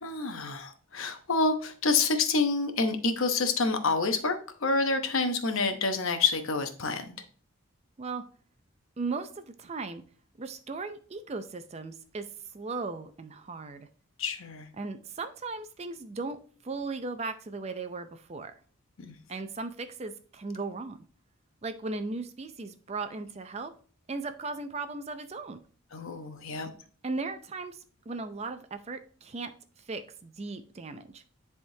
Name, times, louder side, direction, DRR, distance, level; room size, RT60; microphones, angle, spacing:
voice 1, 0.0-7.2 14.2-14.7 19.0-19.2 25.9-26.7, left 3 dB, 70° left, 7 dB, 0.8 m, -28 dB
voice 2, 9.0-10.0 10.4-12.2 12.5-13.9 14.8-18.5 19.3-21.0 21.6-23.7 24.1-25.6 27.0-29.5 29.9-31.2, right 3 dB, 30° right, 10 dB, 0.4 m, -37 dB
10.5 x 3.5 x 2.7 m, 0.43 s
head